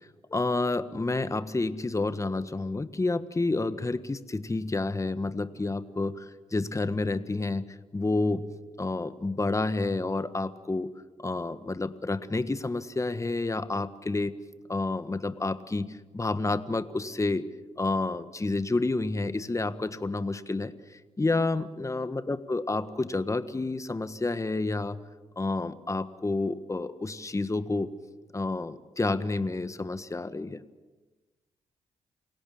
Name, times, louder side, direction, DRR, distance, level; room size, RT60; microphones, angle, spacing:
voice 1, 0.3-7.7 7.9-10.9 11.2-14.3 14.7-17.4 17.8-25.1 25.4-27.9 28.3-30.6, left 2 dB, 25° left, 12 dB, 1.5 m, -29 dB
28.5 x 17.5 x 7.3 m, 1.2 s
supercardioid pair, 55°, 13 cm